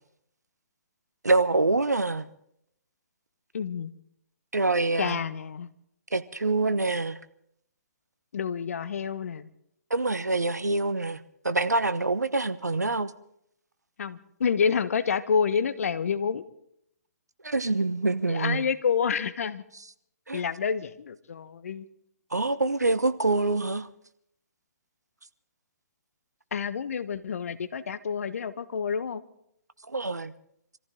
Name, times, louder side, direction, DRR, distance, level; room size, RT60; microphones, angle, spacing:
voice 1, 1.2-2.3 4.5-5.2 6.1-7.2 9.9-11.2 11.4-13.1 17.4-18.6 20.3-20.4 22.3-23.9 29.9-30.3, right 3 dB, 90° right, 1.1 m, -25 dB
voice 2, 3.5-3.9 5.0-5.7 8.3-9.5 14.0-16.4 18.3-19.6 20.3-21.9 26.5-29.2, left 6 dB, 60° left, 1.2 m, -28 dB
25.5 x 14.5 x 3.8 m
figure-of-eight pair, 135°, 9 cm